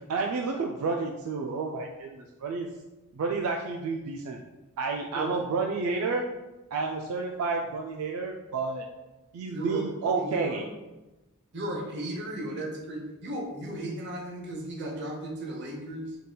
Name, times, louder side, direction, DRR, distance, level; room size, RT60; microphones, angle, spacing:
voice 1, 0.1-2.7 3.1-4.4 4.8-6.3 6.7-8.9 9.3-10.6, right 4 dB, 80° right, 2 dB, 0.3 m, -30 dB
voice 2, 9.5-9.9 10.2-10.6 11.5-16.2, right 1 dB, 50° right, 0 dB, 0.8 m, -35 dB
3.9 x 3.6 x 2.2 m, 1.1 s
head